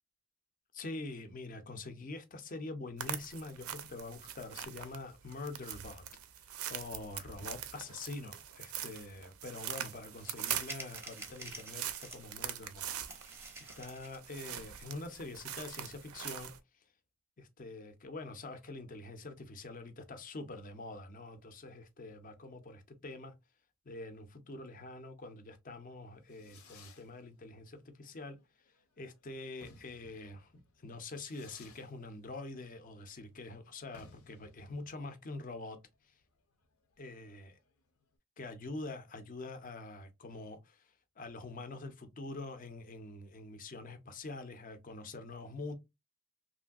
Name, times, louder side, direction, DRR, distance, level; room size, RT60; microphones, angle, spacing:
voice 1, 0.7-6.0 6.7-12.9 13.6-16.5 17.4-23.4 23.9-28.4 29.0-35.8 37.0-37.5 38.4-40.9 41.2-45.7, left 2 dB, 40° left, 0.5 m, -45 dB
sound 1, 3.0-16.6, right 10 dB, 75° right, 0.5 m, -43 dB
sound 2, 9.7-9.8 10.2-12.4 12.8-14.3, right 2 dB, 10° right, 0.6 m, -49 dB
Fireworks, 25.9-38.1, left 4 dB, 85° left, 0.7 m, -62 dB
3.1 x 2.6 x 2.3 m
head